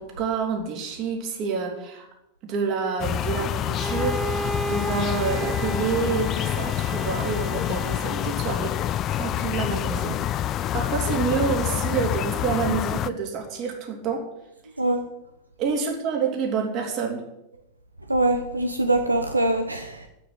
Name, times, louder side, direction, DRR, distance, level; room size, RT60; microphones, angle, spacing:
voice 1, 0.0-2.1 2.4-8.7 9.1-10.2 10.7-14.2 15.6-17.2, right 5 dB, 40° right, 2 dB, 3.5 m, -28 dB
sound 1, 3.0-13.1, left 11 dB, 30° left, 0.5 m, -27 dB
Bowed string instrument, 3.7-8.5, right 3 dB, 20° right, 0.6 m, -34 dB
voice 2, 18.1-20.1, right 2 dB, 85° right, 6 dB, 1.0 m, -23 dB
9.5 x 8.6 x 9.6 m, 0.87 s
figure-of-eight pair, 90°, 0 cm